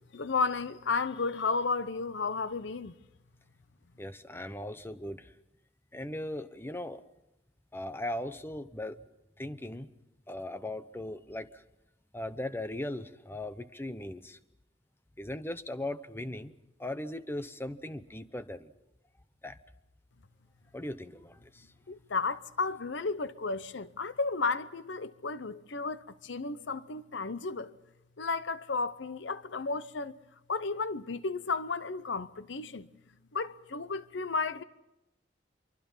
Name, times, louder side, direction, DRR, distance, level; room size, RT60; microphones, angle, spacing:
voice 1, 0.1-2.9 21.9-27.7 28.2-30.2 30.5-32.9 33.3-34.6, left 4 dB, 75° left, 0.8 m, -33 dB
voice 2, 4.0-5.3 5.9-7.0 7.7-9.0 9.4-9.9 10.3-11.6 12.1-14.4 15.2-16.5 16.8-18.7 19.4-19.6 20.7-21.6, left 1 dB, 15° left, 0.9 m, -38 dB
25.5 x 24.0 x 5.6 m
head